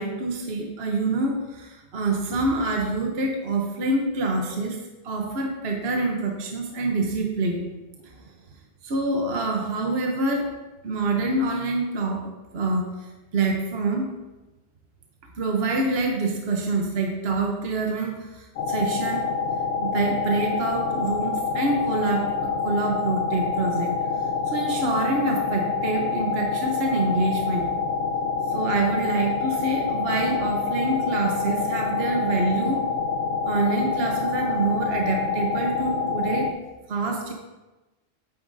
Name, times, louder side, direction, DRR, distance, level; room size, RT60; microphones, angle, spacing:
voice 1, 0.0-7.7 8.0-8.2 8.8-10.5 10.8-12.9 13.3-14.1 15.4-19.3 19.8-24.0 24.5-27.7 28.5-32.9 33.4-36.5 36.9-37.3, right 3 dB, 65° right, 1 dB, 1.1 m, -26 dB
sound 1, 18.6-36.5, left 5 dB, 75° left, 1.0 m, -26 dB
9.9 x 8.8 x 2.6 m, 1.1 s
omnidirectional pair, 1.1 m